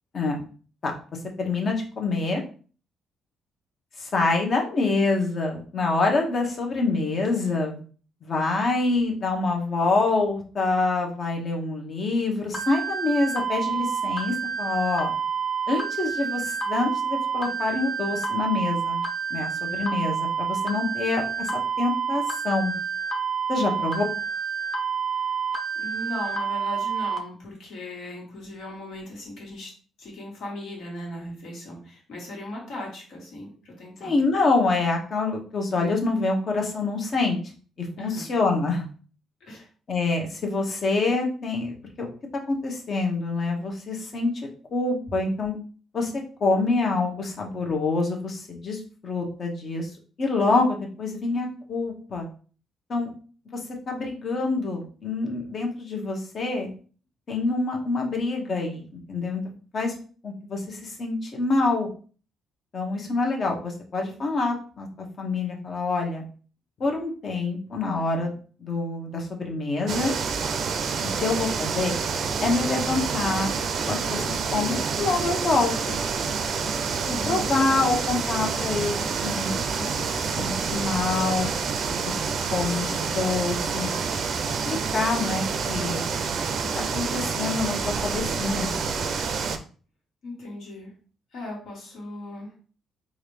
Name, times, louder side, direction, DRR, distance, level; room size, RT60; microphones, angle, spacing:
voice 1, 1.4-2.4 4.0-7.8 8.2-15.1 15.7-19.0 19.3-21.5 21.8-22.7 23.5-24.0 34.0-37.4 37.8-38.8 39.9-42.1 42.5-44.3 44.7-45.6 45.9-49.9 50.2-52.3 52.9-53.1 53.9-56.7 57.3-59.4 59.7-59.9 60.2-61.9 62.7-64.9 65.2-66.2 66.8-68.3 68.6-70.1 71.2-71.9 72.4-73.5 73.9-76.0 77.3-79.6 80.3-81.5 82.0-82.1 82.5-83.9 84.7-86.1 86.7-88.7, left 3 dB, 50° left, 1 dB, 1.1 m, -26 dB
sound 1, 12.5-27.2, right 6 dB, 20° left, 0.8 m, -28 dB
voice 2, 23.6-23.9 25.7-29.7 30.0-34.2 38.0-38.2 39.4-39.7 77.0-77.5 90.2-90.9 91.3-92.5, left 1 dB, 75° left, -2 dB, 1.7 m, -37 dB
sound 2, 69.9-89.6, right 5 dB, 65° right, 0.5 m, -28 dB
3.9 x 2.6 x 3.2 m, 0.39 s
cardioid pair, 90°, 0 cm